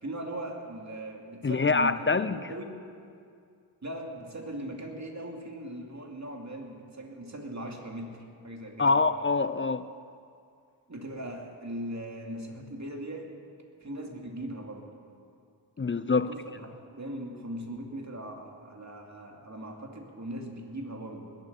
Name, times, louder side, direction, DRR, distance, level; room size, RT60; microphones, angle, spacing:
voice 1, 0.0-2.7 3.8-9.0 10.9-13.3 13.8-14.9 16.1-21.4, right 1 dB, 35° right, 1 dB, 2.6 m, -39 dB
voice 2, 1.4-2.5 8.8-9.9 15.8-16.3, left 4 dB, 25° left, 13 dB, 0.5 m, -25 dB
20.5 x 7.9 x 6.9 m, 2.3 s
cardioid pair, 45°, 46 cm